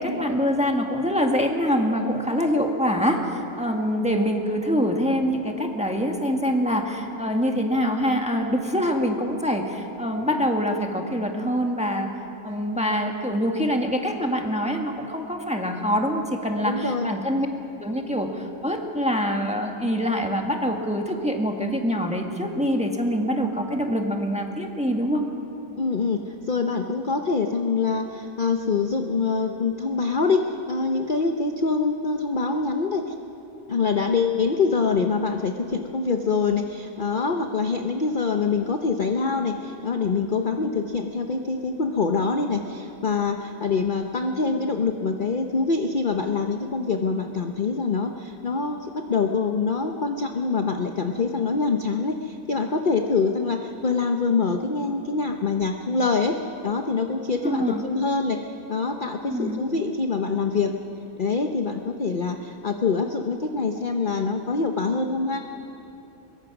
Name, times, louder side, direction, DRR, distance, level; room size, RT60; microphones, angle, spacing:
voice 1, 0.0-12.1 12.4-17.5 17.8-25.2 26.8-26.9 57.4-57.8 59.2-59.6, equal, 5° right, 2 dB, 1.5 m, -25 dB
voice 2, 16.7-17.1 25.8-33.1 33.7-56.3 56.6-60.8 61.2-65.4, left 4 dB, 40° left, 4 dB, 0.8 m, -25 dB
22.5 x 22.0 x 6.0 m, 2.8 s
omnidirectional pair, 1.9 m